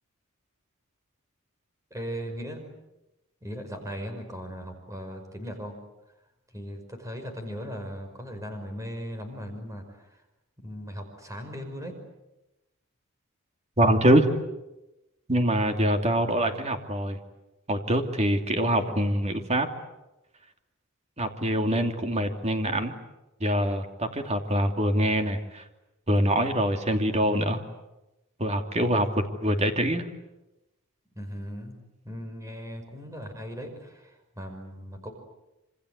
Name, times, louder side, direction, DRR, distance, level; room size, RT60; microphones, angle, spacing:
voice 1, 1.9-2.7 3.4-5.8 6.5-10.2 10.6-12.0 31.2-35.1, equal, 15° right, 5 dB, 5.5 m, -38 dB
voice 2, 13.8-14.3 15.3-17.2 17.7-19.7 21.2-22.9 23.4-25.6 26.1-27.6 28.4-30.1, right 1 dB, 30° right, 5 dB, 2.8 m, -24 dB
27.0 x 26.5 x 8.2 m, 0.97 s
head